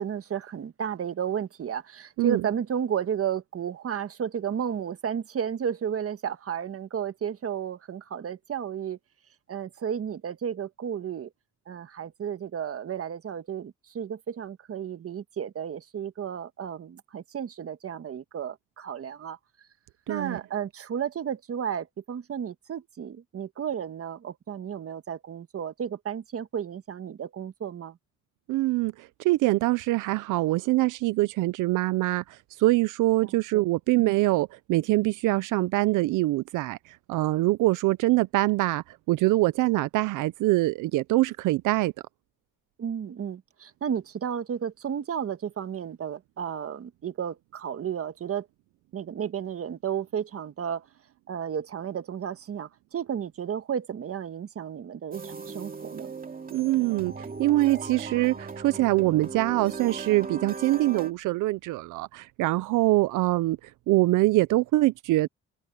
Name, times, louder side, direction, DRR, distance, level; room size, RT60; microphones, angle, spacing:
voice 1, 0.0-9.0 9.5-11.3 11.7-19.4 20.1-28.0 33.2-33.6 42.8-48.5 48.9-50.9 51.3-56.1, right 8 dB, 50° right, 1.5 m, -33 dB
voice 2, 20.1-20.4 28.5-41.9 56.5-65.3, right 19 dB, 85° right, 0.5 m, -24 dB
sound 1, 55.1-61.1, right 4 dB, 30° right, 2.8 m, -38 dB
cardioid pair, 90°, 30 cm